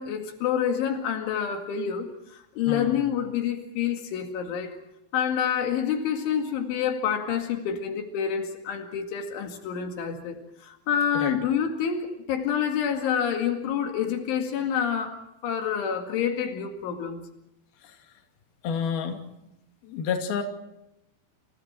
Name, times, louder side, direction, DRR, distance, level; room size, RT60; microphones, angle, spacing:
voice 1, 0.0-4.8 5.1-15.2 15.4-17.3, left 8 dB, 80° left, 4 dB, 4.6 m, -28 dB
voice 2, 2.6-3.0 11.1-11.4 17.8-18.0 18.6-19.2 19.8-20.4, left 6 dB, 55° left, 4 dB, 4.3 m, -29 dB
30.0 x 28.5 x 4.4 m, 0.84 s
omnidirectional pair, 5.4 m